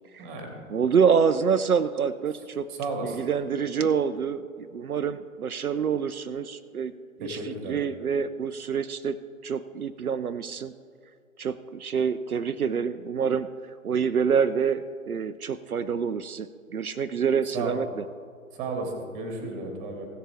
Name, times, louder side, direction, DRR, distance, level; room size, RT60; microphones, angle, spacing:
voice 1, 0.2-0.5 2.7-3.2 7.2-7.8 17.5-17.7 18.5-20.1, right 3 dB, 15° right, 3 dB, 1.9 m, -33 dB
voice 2, 0.7-2.7 3.0-6.9 7.2-9.2 9.4-10.7 11.4-13.5 13.8-16.5 16.7-17.9, right 6 dB, 80° right, 10 dB, 0.6 m, -26 dB
16.5 x 6.8 x 3.4 m, 2.3 s
figure-of-eight pair, 130°, 43 cm